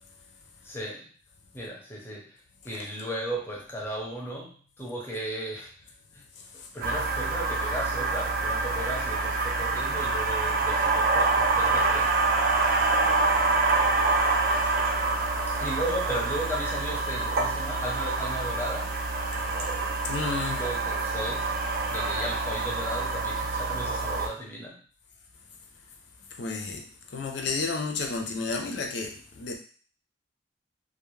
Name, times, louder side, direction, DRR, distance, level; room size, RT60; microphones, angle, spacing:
voice 1, 0.6-1.1 1.5-2.4 2.6-5.7 6.1-6.3 6.7-12.1 15.5-19.0 20.5-21.6 21.9-24.8, right 1 dB, 10° left, -3 dB, 0.5 m, -35 dB
sound 1, 6.8-24.3, right 3 dB, 50° right, 0.4 m, -26 dB
voice 2, 20.0-20.6 26.3-26.8 27.1-29.6, left 4 dB, 70° left, 3 dB, 0.5 m, -31 dB
2.2 x 2.0 x 3.1 m, 0.43 s
head